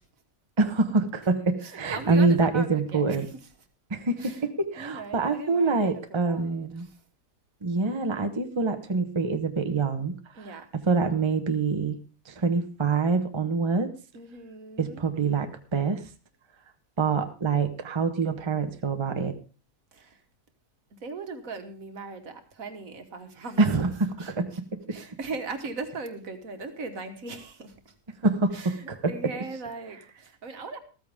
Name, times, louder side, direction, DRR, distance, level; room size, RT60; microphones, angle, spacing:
voice 1, 0.6-3.3 3.9-6.9 7.6-10.2 10.9-12.0 12.3-13.9 14.8-16.1 17.0-19.3 23.6-24.1 24.4-25.0 28.2-29.1, right 4 dB, 20° right, 6 dB, 0.9 m, -25 dB
voice 2, 1.6-3.5 4.2-4.4 4.8-7.0 10.3-10.6 14.1-15.0 19.9-20.2 20.9-23.8 24.2-24.6 24.9-28.0 28.5-30.8, right 4 dB, 60° right, 7 dB, 1.8 m, -39 dB
14.0 x 14.0 x 3.6 m, 0.35 s
omnidirectional pair, 1.6 m